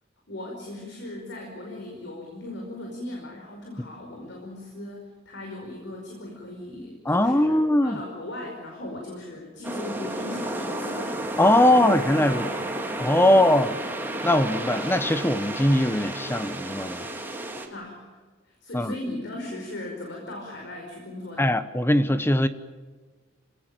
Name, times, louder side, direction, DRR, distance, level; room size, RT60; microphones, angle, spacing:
voice 1, 0.3-12.6 13.2-13.6 17.5-21.5, left 1 dB, 60° left, 0 dB, 5.2 m, -38 dB
voice 2, 7.0-8.0 11.4-12.5 13.0-13.7 14.2-17.1 18.7-18.9 21.4-22.5, left 1 dB, 10° left, 12 dB, 0.9 m, -21 dB
sound 1, 9.6-17.7, right 1 dB, 10° right, 2.7 m, -32 dB
27.5 x 18.5 x 9.1 m, 1.3 s
head